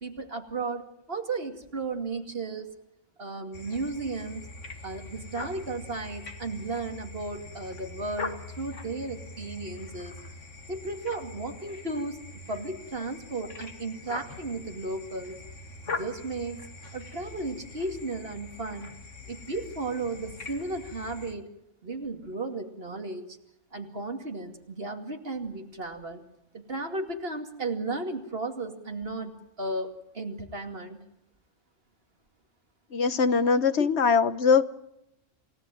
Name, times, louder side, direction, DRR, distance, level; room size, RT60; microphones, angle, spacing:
voice 1, 0.0-2.8 3.2-4.5 4.8-10.1 10.7-12.2 12.5-15.4 15.9-16.7 16.9-18.9 19.3-21.5 21.8-23.4 23.7-26.2 26.5-29.3 29.6-31.0 33.8-33.9, right 3 dB, 55° right, 5 dB, 2.7 m, -34 dB
sound 1, 3.5-21.3, left 3 dB, 85° left, 2.3 m, -42 dB
voice 2, 32.9-34.6, left 5 dB, 65° left, 13 dB, 1.4 m, -22 dB
28.5 x 17.0 x 9.2 m, 0.84 s
omnidirectional pair, 1.2 m